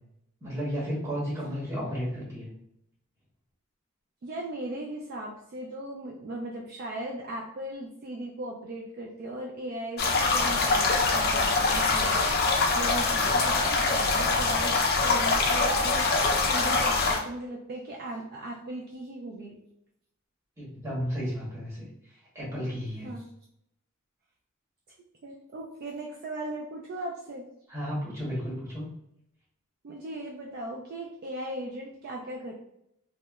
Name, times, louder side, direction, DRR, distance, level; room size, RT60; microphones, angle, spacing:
voice 1, 0.4-2.5 20.6-21.9 22.3-23.1 27.7-28.9, equal, 15° right, -7 dB, 1.0 m, -33 dB
voice 2, 4.2-10.0 10.3-12.2 12.7-16.1 16.5-19.6 23.0-23.3 25.2-27.4 29.8-32.5, right 1 dB, 50° right, -1 dB, 0.3 m, -38 dB
sound 1, 10.0-17.2, left 3 dB, 50° left, 0.4 m, -24 dB
2.8 x 2.1 x 2.2 m, 0.77 s
head